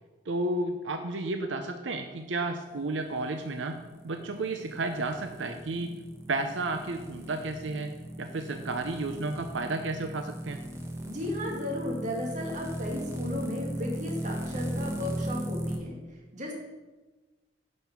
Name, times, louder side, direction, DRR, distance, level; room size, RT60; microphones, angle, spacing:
voice 1, 0.3-3.7 4.0-5.9 6.3-7.9 8.2-10.6, right 2 dB, 85° right, 6 dB, 0.7 m, -32 dB
sound 1, 2.9-15.8, right 1 dB, 15° right, 1.1 m, -37 dB
voice 2, 11.0-16.5, left 1 dB, 40° right, -1 dB, 2.3 m, -35 dB
10.5 x 5.4 x 5.9 m, 1.2 s
head